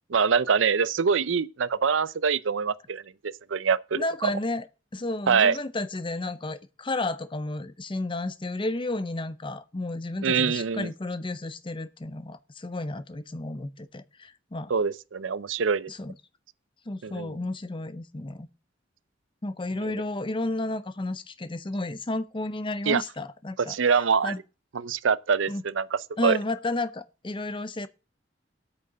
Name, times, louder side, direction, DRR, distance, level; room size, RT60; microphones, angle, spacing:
voice 1, 0.1-4.3 5.3-5.6 10.2-10.9 14.7-15.9 17.0-17.3 19.8-19.9 22.9-23.0 23.6-24.3 24.7-26.4, right 6 dB, 85° right, 0.6 m, -25 dB
voice 2, 3.9-4.7 4.9-14.7 15.9-16.1 16.9-18.5 19.4-23.8 24.2-24.4 25.5-25.6 26.2-27.9, left 2 dB, 25° left, 0.7 m, -32 dB
8.7 x 6.6 x 6.6 m
head